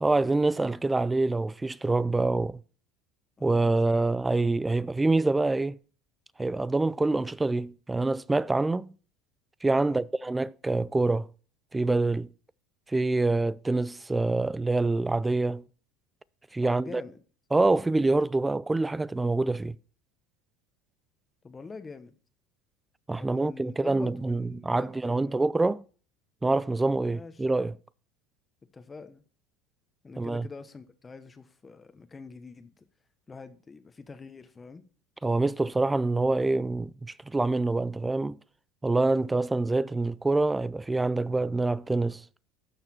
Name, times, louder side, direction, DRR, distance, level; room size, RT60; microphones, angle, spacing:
voice 1, 0.0-2.6 3.4-5.8 6.4-8.9 9.6-11.3 11.7-12.3 12.9-15.6 16.5-17.0 17.5-19.8 23.1-25.8 26.4-27.7 30.2-30.5 35.2-38.4 38.8-42.2, right 2 dB, 10° right, 0.4 m, -26 dB
voice 2, 3.4-4.1 9.8-10.0 16.6-17.2 21.4-22.1 23.2-25.4 27.1-27.4 28.7-29.2 30.0-32.8 33.3-34.8, left 4 dB, 20° left, 1.1 m, -45 dB
12.0 x 6.6 x 4.4 m
supercardioid pair, 110°, 0 cm